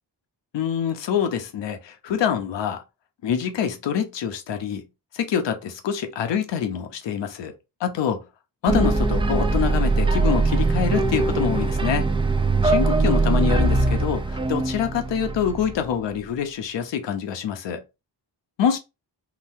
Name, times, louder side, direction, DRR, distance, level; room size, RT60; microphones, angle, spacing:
voice 1, 0.5-2.8 3.2-4.8 5.1-7.5 7.8-8.2 8.6-12.1 12.6-17.8 18.6-18.8, left 8 dB, 80° left, 0.7 m, -25 dB
sound 1, 8.7-15.9, right 3 dB, 15° right, 0.4 m, -21 dB
3.8 x 2.2 x 2.7 m
cardioid pair, 65°, 43 cm